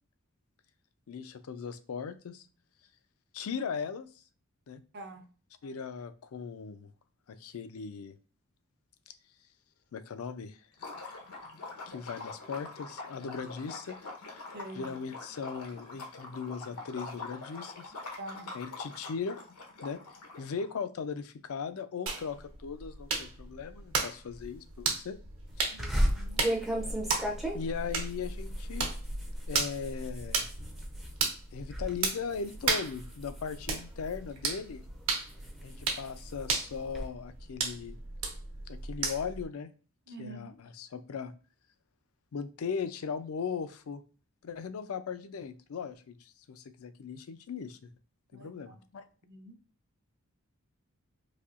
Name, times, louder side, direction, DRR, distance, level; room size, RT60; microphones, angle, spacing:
voice 1, 1.1-2.5 3.3-4.1 4.7-4.8 5.6-6.9 7.3-8.1 9.9-10.6 11.9-14.0 14.7-17.9 18.5-19.4 19.8-20.0 20.4-25.2 27.5-28.9 29.5-30.4 31.5-34.8 35.6-38.0 38.7-39.7 40.1-41.3 42.3-44.0 44.4-47.9 48.3-49.0, left 6 dB, 75° left, 11 dB, 0.4 m, -38 dB
voice 2, 4.9-5.2 14.5-14.9 18.2-18.5 25.7-26.5 40.1-40.6 48.3-48.8 49.2-49.5, right 1 dB, 50° right, 6 dB, 0.6 m, -46 dB
Liquid, 10.7-20.6, left 3 dB, 90° left, 0.9 m, -44 dB
sound 1, 22.1-39.4, right 4 dB, 65° right, 1.0 m, -35 dB
sound 2, 25.8-31.2 31.5-31.9 32.3-34.3 34.9-37.1, equal, ahead, 0.4 m, -35 dB
4.2 x 2.7 x 2.4 m, 0.38 s
head